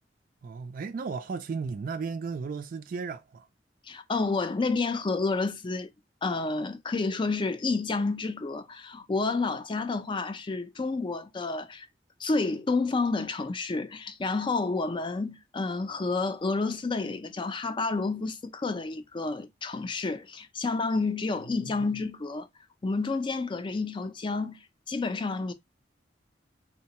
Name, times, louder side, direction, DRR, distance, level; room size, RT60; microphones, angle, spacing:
voice 1, 0.4-3.5 21.5-21.9, right 5 dB, 50° right, 0.3 m, -35 dB
voice 2, 3.9-5.9 6.2-11.9 12.2-22.5 22.8-24.6 24.9-25.5, left 3 dB, 30° left, 0.4 m, -30 dB
3.8 x 2.2 x 2.8 m
head